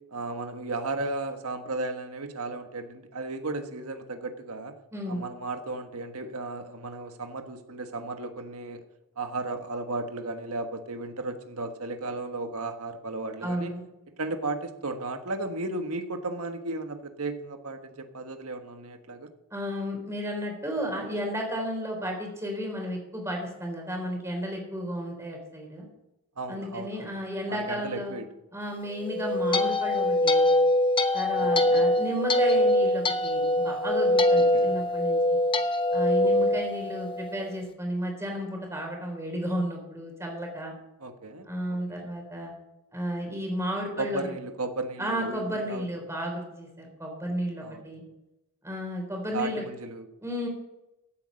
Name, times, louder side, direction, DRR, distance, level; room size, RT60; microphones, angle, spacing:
voice 1, 0.1-4.7 5.1-8.8 9.2-13.7 14.2-19.3 26.4-27.1 27.5-28.3 31.4-31.8 34.3-34.8 36.2-36.6 41.0-42.1 44.0-45.9 47.6-47.9 49.3-50.1, right 2 dB, 75° right, 6 dB, 1.5 m, -35 dB
voice 2, 4.9-5.2 13.4-13.8 19.5-25.9 26.5-28.2 28.5-30.5 31.1-35.4 35.9-40.7 41.4-42.5 42.9-44.2 45.0-48.0 48.6-49.6 50.2-50.5, equal, 15° right, 1 dB, 3.8 m, -33 dB
sound 1, 29.0-37.4, left 1 dB, 25° left, 0.8 m, -23 dB
15.5 x 8.6 x 5.2 m, 0.93 s
head